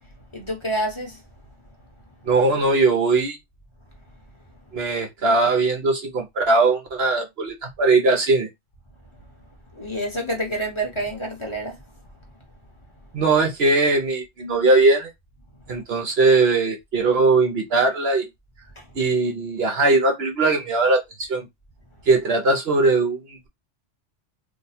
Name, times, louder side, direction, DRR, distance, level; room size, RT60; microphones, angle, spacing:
voice 1, 0.3-1.2 9.7-11.8 18.8-18.9, right 1 dB, 25° left, 1.1 m, -28 dB
voice 2, 2.3-3.4 4.7-8.5 13.1-15.1 15.7-18.3 19.0-21.5 22.1-23.5, right 3 dB, 60° right, 0.9 m, -20 dB
2.9 x 2.2 x 4.1 m
omnidirectional pair, 1.3 m